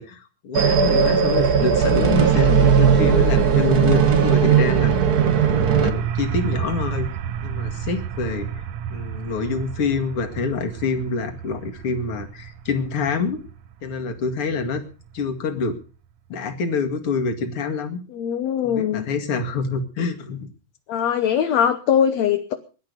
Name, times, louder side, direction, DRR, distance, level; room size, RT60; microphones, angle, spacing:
voice 1, 0.0-4.9 5.5-7.1 7.4-13.4 13.8-14.8 15.1-15.8 16.3-18.0 18.6-20.5, left 4 dB, 45° left, 5 dB, 2.7 m, -26 dB
sound 1, 0.5-5.9, right 7 dB, 90° right, 0.8 m, -17 dB
sound 2, 4.3-15.8, right 8 dB, 65° right, 1.8 m, -31 dB
voice 2, 18.1-19.0 20.9-22.5, left 9 dB, 60° left, 7 dB, 2.0 m, -21 dB
21.5 x 11.5 x 5.3 m, 0.37 s
omnidirectional pair, 4.1 m